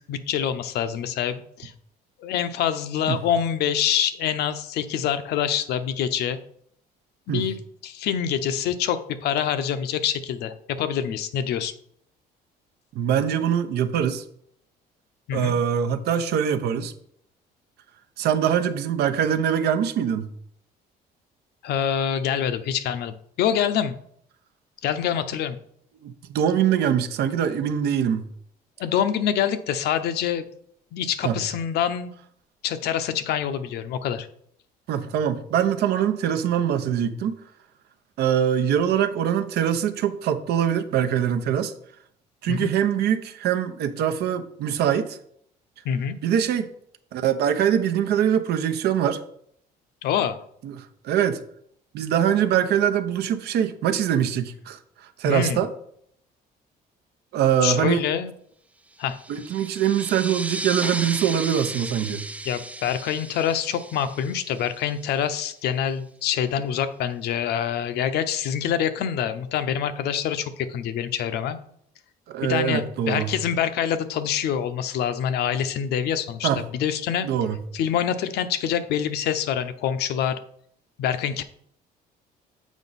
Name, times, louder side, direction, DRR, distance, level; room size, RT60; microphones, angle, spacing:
voice 1, 0.1-1.7 2.2-6.4 7.3-7.6 7.8-11.7 15.3-15.6 21.6-23.9 24.8-25.6 28.8-30.4 30.9-32.1 32.6-34.3 42.5-42.7 45.8-46.1 50.0-50.4 55.3-55.6 57.6-58.3 59.0-59.2 62.4-71.6 72.4-77.3 77.7-80.4 81.0-81.4, left 9 dB, 75° left, 10 dB, 0.7 m, -26 dB
voice 2, 12.9-14.2 15.3-16.9 18.2-20.3 26.0-28.2 31.2-31.4 34.9-37.4 38.2-41.7 42.4-45.2 46.2-46.7 47.1-49.2 50.6-51.4 51.9-54.8 55.2-55.7 57.3-58.1 59.3-62.2 72.3-73.3 76.4-76.6 77.2-77.6, right 9 dB, 75° right, 8 dB, 0.8 m, -23 dB
sound 1, 59.0-65.2, right 2 dB, 10° right, 0.3 m, -35 dB
7.2 x 5.0 x 4.1 m, 0.67 s
cardioid pair, 110°, 17 cm